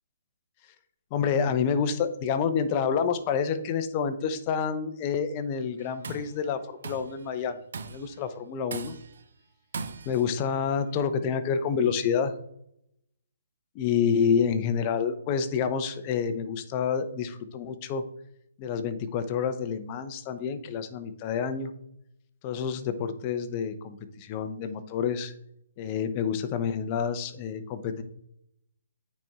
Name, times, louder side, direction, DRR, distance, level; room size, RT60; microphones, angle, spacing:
voice 1, 1.1-7.6 7.9-8.9 10.1-12.3 13.7-18.0 18.6-21.7 22.4-25.3 25.8-28.0, left 6 dB, 30° left, 10 dB, 0.7 m, -28 dB
Tools, 5.8-6.4 6.8-7.2 7.7-8.2 8.7-9.2 9.7-10.3, right 4 dB, 65° right, 0.7 m, -38 dB
9.0 x 4.2 x 3.6 m, 0.76 s
hypercardioid pair, 155°, 0 cm